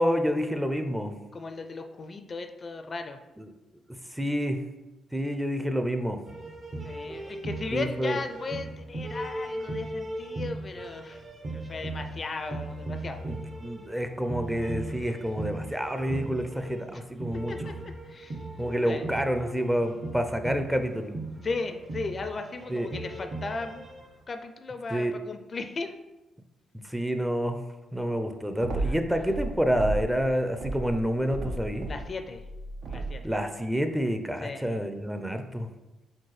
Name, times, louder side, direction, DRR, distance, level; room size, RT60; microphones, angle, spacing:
voice 1, 0.0-1.2 4.1-4.6 5.1-6.2 7.7-8.2 13.3-17.5 18.6-21.2 22.7-22.9 24.9-25.1 26.7-27.6 27.9-31.9 33.2-35.7, equal, 5° right, 7 dB, 0.5 m, -28 dB
voice 2, 1.3-3.2 6.8-11.2 11.5-13.2 16.9-17.0 17.5-17.7 18.1-18.4 18.8-19.0 21.4-23.8 24.3-26.0 28.8-28.9 31.9-32.4 32.9-33.3 34.4-34.7, left 3 dB, 45° left, 7 dB, 0.4 m, -36 dB
sound 1, 6.3-24.2, right 2 dB, 40° right, 0.9 m, -38 dB
sound 2, 28.6-30.2 30.5-33.3, right 2 dB, 70° right, 0.7 m, -34 dB
4.4 x 3.7 x 3.2 m, 1.0 s
supercardioid pair, 60°, 0 cm